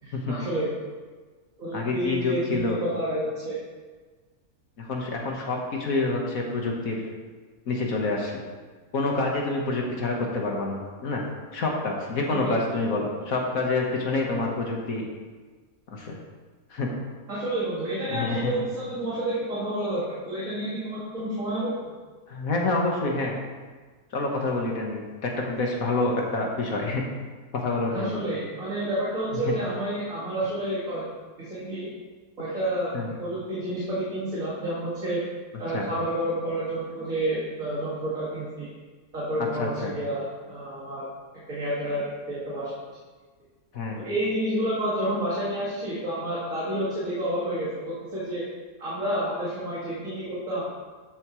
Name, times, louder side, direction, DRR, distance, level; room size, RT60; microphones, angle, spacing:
voice 1, 0.0-0.7 1.6-3.6 12.4-12.6 17.3-21.9 27.9-31.1 31.4-31.9 32.4-35.2 35.6-38.7 39.1-41.1 41.3-42.7 44.0-48.4 48.8-50.6, right 1 dB, 65° right, -9 dB, 2.6 m, -29 dB
voice 2, 1.7-2.8 4.8-7.0 7.7-8.4 8.9-11.2 11.5-15.0 15.9-16.2 16.7-16.9 18.1-18.5 22.3-23.4 24.1-27.0 27.6-28.2 29.5-29.6 32.9-33.1 35.7-35.9 39.6-39.9 43.7-44.0, left 3 dB, 70° left, -1 dB, 1.8 m, -27 dB
13.0 x 7.3 x 3.1 m, 1.4 s
omnidirectional pair, 1.5 m